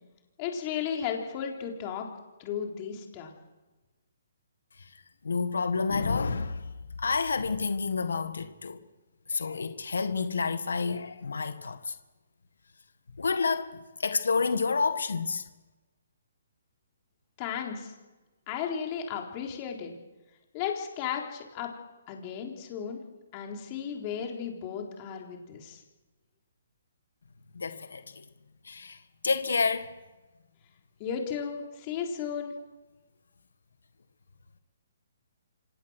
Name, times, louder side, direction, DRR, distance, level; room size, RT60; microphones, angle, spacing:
voice 1, 0.4-2.1 2.4-3.3 17.4-17.9 18.5-19.9 20.5-21.7 22.1-23.0 23.3-25.8 31.0-32.5, left 7 dB, 25° left, 3.8 m, -34 dB
voice 2, 4.8-6.7 7.0-8.8 9.3-12.0 13.2-15.4 27.5-28.3 28.6-30.0, left 4 dB, 90° left, 1.7 m, -29 dB
26.5 x 17.5 x 6.4 m
hypercardioid pair, 160°, 0 cm